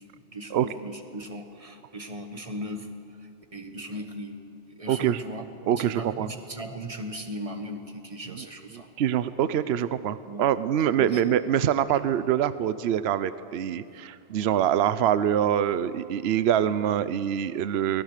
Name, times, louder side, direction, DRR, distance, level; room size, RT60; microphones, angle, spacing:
voice 1, 0.1-2.9 3.2-4.4 4.7-5.4 5.7-8.9 10.2-10.4 11.0-11.3, equal, 30° right, 5 dB, 1.6 m, -38 dB
voice 2, 4.9-5.2 5.7-6.3 8.3-8.5 8.7-18.0, right 10 dB, 65° right, 14 dB, 0.9 m, -25 dB
23.5 x 19.0 x 6.6 m, 2.6 s
omnidirectional pair, 1.2 m